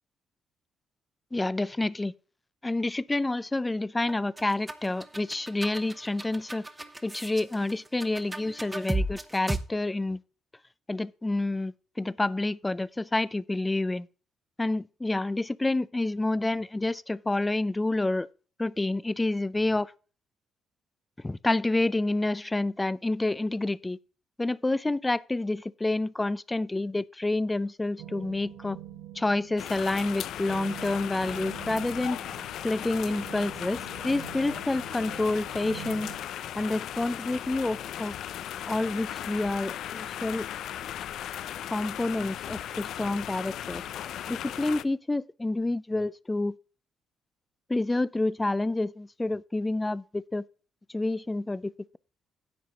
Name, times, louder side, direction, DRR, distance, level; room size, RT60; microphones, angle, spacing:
voice 1, 1.3-2.1 2.6-6.6 7.0-10.2 10.9-14.1 14.6-18.3 18.6-19.9 21.2-24.0 24.4-28.8 29.1-32.2 32.6-36.1 36.6-38.1 38.7-40.4 41.7-43.8 44.3-46.6 47.7-50.5 50.9-52.0, left 2 dB, 15° left, 0.4 m, -28 dB
sound 1, 4.1-9.6, right 1 dB, 15° right, 1.1 m, -34 dB
sound 2, 28.0-36.2, right 11 dB, 80° right, 1.6 m, -45 dB
sound 3, 29.6-44.8, left 11 dB, 75° left, 0.5 m, -37 dB
10.5 x 7.4 x 3.9 m
cardioid pair, 90°, 0 cm